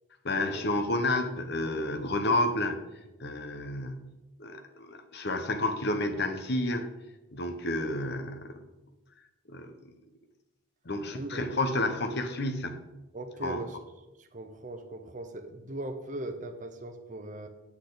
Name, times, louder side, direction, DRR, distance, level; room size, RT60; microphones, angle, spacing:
voice 1, 0.2-2.8 3.2-4.1 4.4-6.9 7.3-8.6 9.5-9.8 10.8-12.8 13.4-13.6, left 2 dB, 50° left, 7 dB, 0.9 m, -30 dB
voice 2, 11.1-11.5 13.1-13.8 14.2-17.5, right 1 dB, 35° right, 7 dB, 0.8 m, -39 dB
8.8 x 8.2 x 4.0 m, 1.0 s
head